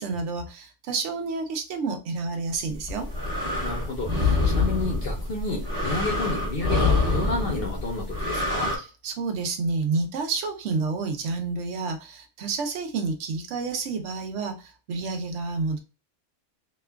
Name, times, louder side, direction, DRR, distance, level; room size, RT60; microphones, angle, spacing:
voice 1, 0.0-3.1 8.7-15.8, right 4 dB, 60° right, 5 dB, 0.9 m, -29 dB
sound 1, 2.7-8.8, left 3 dB, 20° right, 0.9 m, -26 dB
voice 2, 3.6-8.7, left 2 dB, 55° left, -2 dB, 0.7 m, -31 dB
2.9 x 2.3 x 2.2 m, 0.32 s
omnidirectional pair, 1.5 m